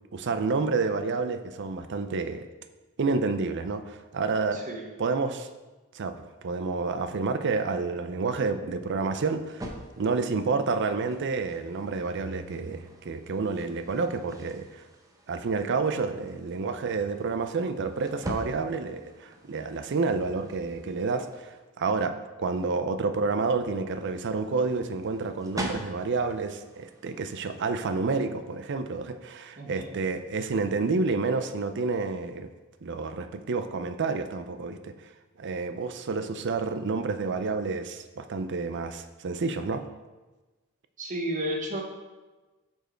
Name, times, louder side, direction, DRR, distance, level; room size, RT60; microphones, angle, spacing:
voice 1, 0.1-2.4 3.0-4.6 5.0-5.5 5.9-6.2 6.4-9.7 10.0-14.8 15.3-32.5 32.8-34.9 35.4-39.8, right 4 dB, 55° right, 9 dB, 0.5 m, -29 dB
voice 2, 4.5-4.9 29.6-30.0 41.0-41.8, equal, 35° right, 0 dB, 1.2 m, -32 dB
sound 1, 9.5-21.6 24.0-27.6, equal, 15° right, 0.8 m, -44 dB
8.0 x 4.6 x 4.5 m, 1.2 s
head